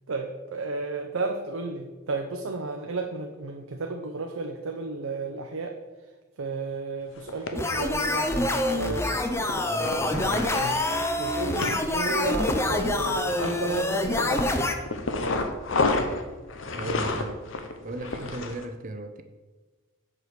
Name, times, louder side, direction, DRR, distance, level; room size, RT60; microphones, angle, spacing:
voice 1, 0.1-5.8 6.4-9.1 10.5-14.7 18.2-18.3, right 3 dB, 85° right, 0.7 m, -33 dB
sound 1, 7.2-7.5 8.4-9.1 9.4-10.9 11.3-11.8 12.2-13.9 14.2-18.7, left 3 dB, 70° left, 0.8 m, -30 dB
sound 2, 7.6-14.8, left 1 dB, 15° left, 0.5 m, -26 dB
voice 2, 9.6-10.7 16.7-17.4 17.8-19.2, right 1 dB, 40° right, 0.6 m, -36 dB
7.8 x 4.8 x 6.5 m
head